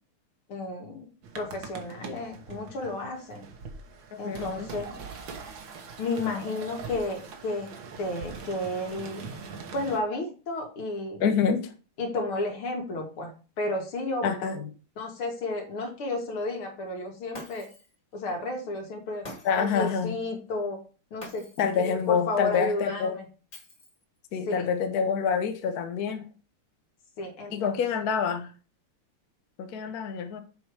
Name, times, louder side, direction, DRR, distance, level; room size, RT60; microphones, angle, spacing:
voice 1, 0.5-1.1 1.4-3.4 4.2-5.0 6.0-7.7 8.0-9.3 9.7-11.2 12.0-14.2 15.0-17.7 18.1-19.2 19.5-20.8 21.1-21.4 21.8-23.2 24.5-24.7 27.2-27.8, left 2 dB, 80° left, 2.7 m, -32 dB
sound 1, 1.2-10.0, right 5 dB, 65° right, 1.8 m, -42 dB
voice 2, 4.2-4.7 11.2-11.7 14.2-14.7 19.4-20.2 21.6-23.2 24.3-26.3 27.5-28.5 29.6-30.4, left 6 dB, 55° left, 1.2 m, -27 dB
Shatter, 17.3-17.9 19.2-19.8 21.2-21.8 23.5-24.2, left 1 dB, 25° left, 1.4 m, -45 dB
7.4 x 4.6 x 4.8 m
omnidirectional pair, 2.3 m